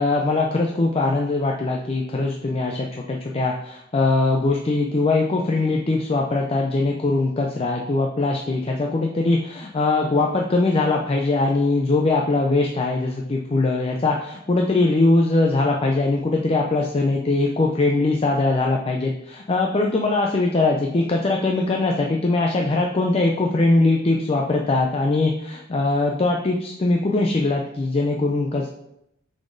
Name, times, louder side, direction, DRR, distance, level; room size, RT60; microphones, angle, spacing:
voice 1, 0.0-28.7, left 2 dB, 30° left, 1 dB, 0.5 m, -21 dB
6.4 x 4.2 x 3.8 m, 0.80 s
head